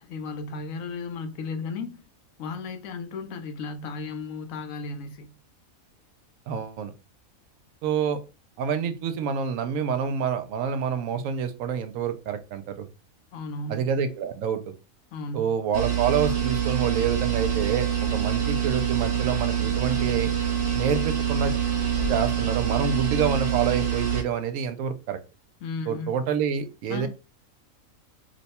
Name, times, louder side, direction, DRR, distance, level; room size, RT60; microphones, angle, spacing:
voice 1, 0.0-2.0 2.4-5.3 13.3-13.9 15.1-15.5 25.6-26.3 26.9-27.1, left 4 dB, 70° left, 1.0 m, -35 dB
voice 2, 6.5-6.9 7.8-8.2 8.6-12.9 13.7-14.7 15.3-20.3 20.7-21.5 22.1-25.2 25.9-27.1, right 7 dB, 70° right, 0.9 m, -27 dB
sound 1, 15.7-24.2, right 9 dB, 45° right, 0.9 m, -25 dB
2.9 x 2.2 x 4.1 m
omnidirectional pair, 1.5 m